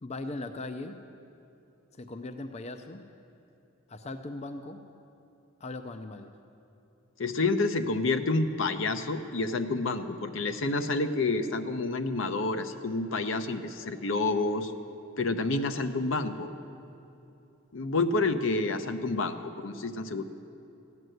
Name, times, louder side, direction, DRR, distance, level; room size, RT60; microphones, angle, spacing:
voice 1, 0.0-1.0 2.0-3.0 3.9-4.8 5.6-6.3, left 2 dB, 30° left, 8 dB, 0.5 m, -39 dB
voice 2, 7.2-14.7 15.2-16.5 17.7-20.2, left 3 dB, 65° left, 9 dB, 0.7 m, -29 dB
14.5 x 9.4 x 7.8 m, 2.8 s
head